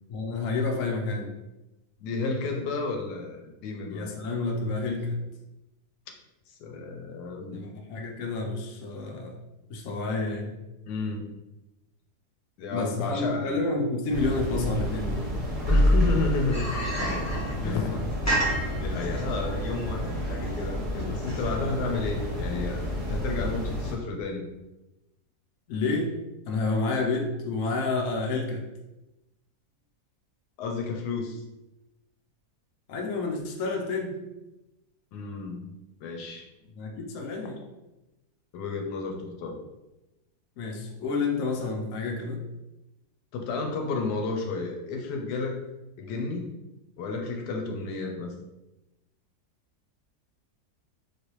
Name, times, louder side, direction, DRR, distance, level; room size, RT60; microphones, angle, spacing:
voice 1, 0.1-1.4 3.9-5.2 7.5-9.4 9.7-10.6 12.7-15.3 17.6-18.0 25.7-26.1 26.4-28.6 32.9-34.2 36.8-37.6 40.6-42.4, left 3 dB, 65° left, 1 dB, 0.9 m, -29 dB
voice 2, 2.0-4.1 6.5-7.6 10.9-11.3 12.6-13.6 15.7-16.7 17.6-18.1 18.8-24.5 30.6-31.4 35.1-35.7 36.0-36.5 38.5-39.6 43.3-45.6 46.0-46.5 47.0-48.3, left 4 dB, 85° left, 3 dB, 1.1 m, -32 dB
sound 1, 14.1-23.9, equal, 30° right, 0.7 m, -29 dB
sound 2, 16.5-21.7, right 1 dB, 20° left, 0.5 m, -31 dB
3.2 x 2.6 x 2.9 m, 0.98 s
omnidirectional pair, 1.7 m